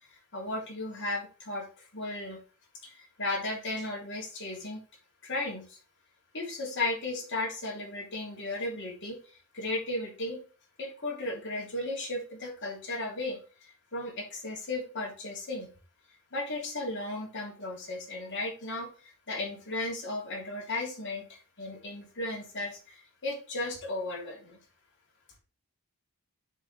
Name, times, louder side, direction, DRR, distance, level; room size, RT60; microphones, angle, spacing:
voice 1, 0.3-2.4 2.8-4.8 5.2-5.8 6.3-10.4 10.8-15.7 16.3-24.6, left 2 dB, 55° left, -2 dB, 3.3 m, -35 dB
10.0 x 5.1 x 3.4 m, 0.36 s
head